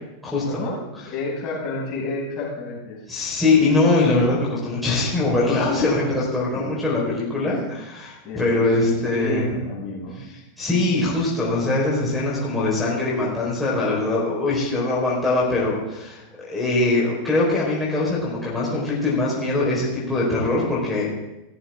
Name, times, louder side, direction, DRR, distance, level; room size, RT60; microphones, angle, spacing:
voice 1, 0.4-3.1 6.5-6.9 7.4-7.6 8.2-10.2, left 1 dB, 35° left, -4 dB, 6.4 m, -31 dB
voice 2, 3.1-9.4 10.6-21.0, left 2 dB, ahead, -7 dB, 4.6 m, -22 dB
17.0 x 14.0 x 3.7 m, 0.98 s
figure-of-eight pair, 90°, 0 cm